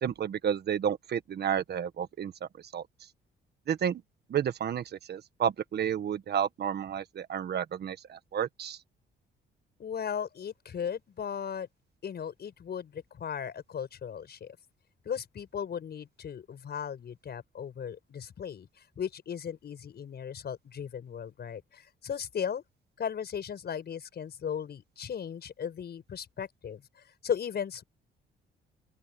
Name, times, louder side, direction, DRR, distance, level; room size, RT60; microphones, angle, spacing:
voice 1, 0.0-2.3 2.7-2.8 3.7-4.0 4.3-8.8, right 8 dB, 55° right, 1.5 m, -31 dB
voice 2, 9.8-11.7 12.0-14.6 15.0-22.6 23.0-27.8, left 8 dB, 55° left, 6.1 m, -37 dB
open air
cardioid pair, 90°, 20 cm